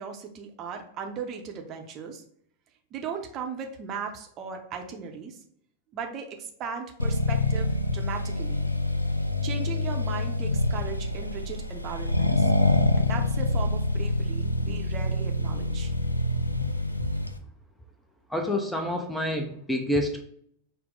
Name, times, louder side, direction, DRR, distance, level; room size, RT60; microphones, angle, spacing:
voice 1, 0.0-2.2 2.9-5.4 5.9-8.7 9.4-12.5 13.0-15.9, right 6 dB, 35° right, 4 dB, 0.6 m, -37 dB
Accelerating revving vroom, 7.0-17.4, left 2 dB, 85° left, 0.3 m, -26 dB
voice 2, 18.3-20.2, left 1 dB, 5° left, 3 dB, 0.5 m, -28 dB
5.8 x 2.1 x 3.8 m, 0.67 s
figure-of-eight pair, 90°, 0 cm